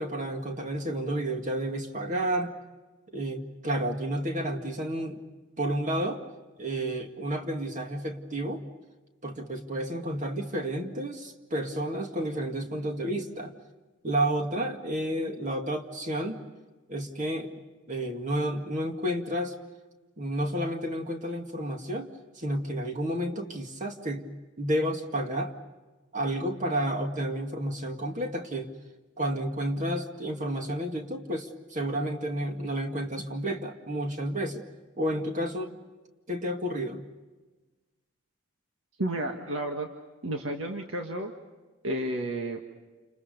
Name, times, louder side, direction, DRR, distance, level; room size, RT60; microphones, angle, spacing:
voice 1, 0.0-2.6 3.1-5.2 5.6-6.2 6.6-8.6 9.2-13.5 14.0-16.4 16.9-17.5 17.9-19.5 20.2-22.1 22.4-24.3 24.6-25.5 26.1-28.7 29.2-34.6 35.0-35.8 36.3-37.0, right 1 dB, 40° right, 4 dB, 2.1 m, -31 dB
voice 2, 39.0-39.9 40.2-41.3 41.8-42.6, right 1 dB, 85° right, 3 dB, 1.7 m, -31 dB
29.5 x 28.0 x 5.4 m, 1.2 s
head